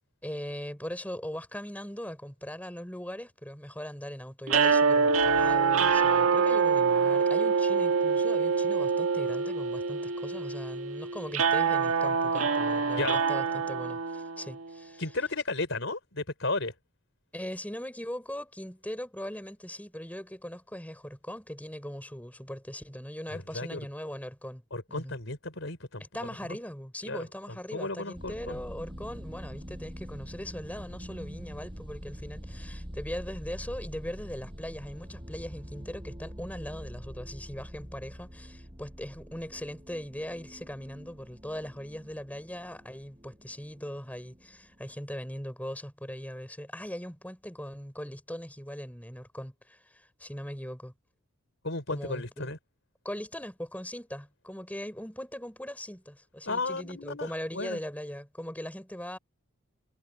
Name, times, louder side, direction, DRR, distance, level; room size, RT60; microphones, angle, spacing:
voice 1, 0.2-15.0 17.3-24.6 24.9-25.2 26.0-50.9 51.9-52.5 53.0-59.2, equal, 5° left, 5.2 m, -40 dB
sound 1, 4.5-14.7, right 5 dB, 85° right, 1.7 m, -25 dB
voice 2, 15.0-16.7 23.3-23.9 24.7-26.0 26.5-26.6 27.1-27.3 27.7-28.6 51.6-52.6 56.5-57.8, left 2 dB, 65° left, 5.3 m, -34 dB
sound 2, 28.1-44.9, equal, 25° right, 6.4 m, -44 dB
head